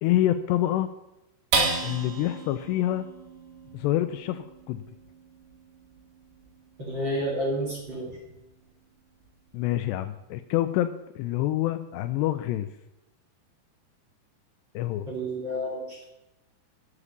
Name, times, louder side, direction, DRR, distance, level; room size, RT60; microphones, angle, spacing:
voice 1, 0.0-0.9 1.8-3.1 3.7-4.8 9.5-12.7 14.8-15.1, left 13 dB, 80° left, 11 dB, 2.6 m, -27 dB
sound 1, 1.5-8.2 8.7-8.8 9.2-9.7, right 4 dB, 80° right, 4.8 m, -34 dB
voice 2, 6.8-8.1 15.1-16.0, equal, 30° right, -4 dB, 2.6 m, -30 dB
10.0 x 8.2 x 7.2 m, 0.92 s
omnidirectional pair, 5.2 m